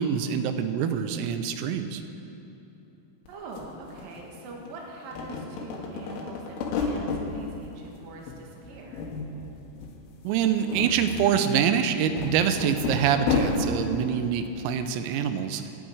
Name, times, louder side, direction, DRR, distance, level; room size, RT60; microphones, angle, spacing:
voice 1, 0.0-2.0 10.3-15.7, right 8 dB, 90° right, 9 dB, 3.4 m, -25 dB
sound 1, 3.3-3.4 3.6-4.7 5.0-7.2 7.6-8.4 8.6-9.5 9.8-9.9 10.4-13.7, left 4 dB, 75° left, 3.9 m, -31 dB
voice 2, 3.3-9.1, right 3 dB, 55° right, -1 dB, 3.0 m, -43 dB
24.0 x 10.5 x 4.8 m, 2.9 s
omnidirectional pair, 5.9 m